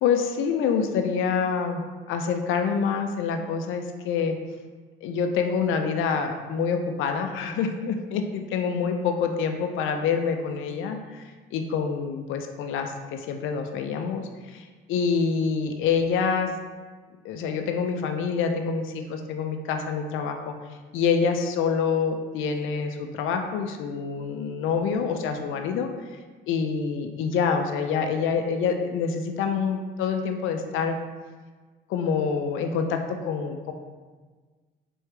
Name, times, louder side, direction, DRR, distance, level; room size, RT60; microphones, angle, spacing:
voice 1, 0.0-1.8 2.1-4.4 5.0-11.2 11.5-16.5 17.2-20.5 20.9-25.9 26.5-31.0 31.9-33.7, left 6 dB, 85° left, 5 dB, 0.4 m, -26 dB
3.4 x 3.2 x 3.3 m, 1.4 s
cardioid pair, 90°, 20 cm